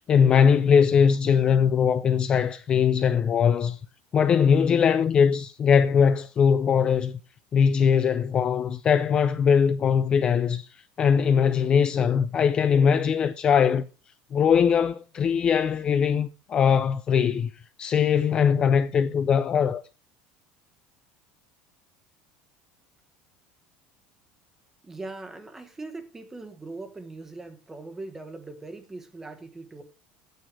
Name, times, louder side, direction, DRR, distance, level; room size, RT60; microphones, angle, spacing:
voice 1, 0.0-3.8 4.1-7.1 7.5-10.7 11.0-13.9 14.3-17.5 17.8-19.8, left 7 dB, 25° left, 0.4 m, -21 dB
voice 2, 24.8-29.8, right 2 dB, 10° right, 1.1 m, -40 dB
9.0 x 8.1 x 4.7 m
cardioid pair, 170°, 4 cm